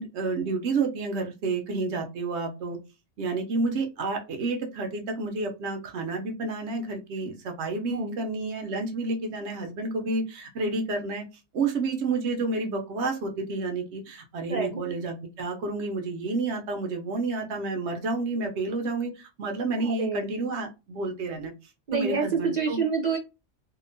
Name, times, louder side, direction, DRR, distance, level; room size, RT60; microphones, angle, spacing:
voice 1, 0.0-2.8 3.2-11.2 11.5-21.5 21.9-22.8, right 3 dB, 80° right, 4 dB, 0.9 m, -30 dB
voice 2, 14.5-14.8 19.8-20.2 21.9-23.2, right 5 dB, 55° right, 0 dB, 0.5 m, -27 dB
2.8 x 2.1 x 2.5 m, 0.27 s
omnidirectional pair, 1.1 m